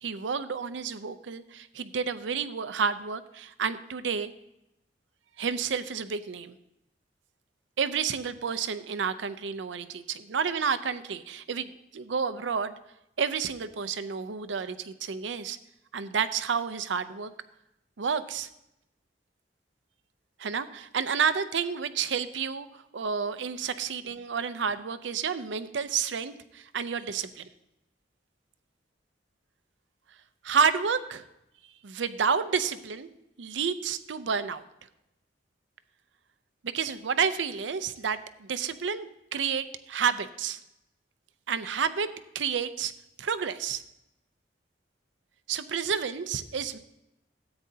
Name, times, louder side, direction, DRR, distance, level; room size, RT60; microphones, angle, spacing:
voice 1, 0.0-4.3 5.4-6.5 7.8-12.8 13.2-15.6 15.9-17.3 18.0-18.5 20.4-27.5 30.4-31.2 31.8-33.1 33.4-34.6 36.6-40.6 41.5-42.1 42.3-42.9 43.2-43.8 45.5-46.8, right 6 dB, 85° right, 13 dB, 0.5 m, -30 dB
13.5 x 8.8 x 2.8 m, 0.86 s
head